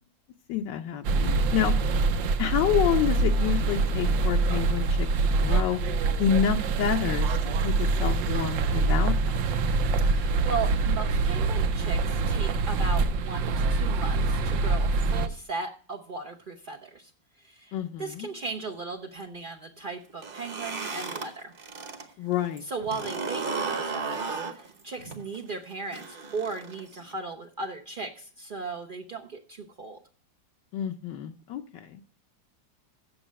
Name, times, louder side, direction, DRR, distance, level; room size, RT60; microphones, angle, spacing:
voice 1, 0.5-2.0 2.4-5.1 5.4-5.8 6.2-9.4 17.7-18.3 22.2-22.6 30.7-32.0, left 10 dB, 80° left, 5 dB, 1.3 m, -28 dB
sound 1, 1.0-15.3, right 3 dB, 85° right, 1.4 m, -25 dB
voice 2, 10.0-17.1 17.4-17.7 18.0-21.5 22.7-30.0, right 4 dB, 60° right, 2 dB, 0.5 m, -37 dB
sound 2, 20.1-22.0 22.4-27.1, right 4 dB, 35° right, 1.0 m, -34 dB
7.9 x 7.1 x 7.3 m, 0.43 s
omnidirectional pair, 2.0 m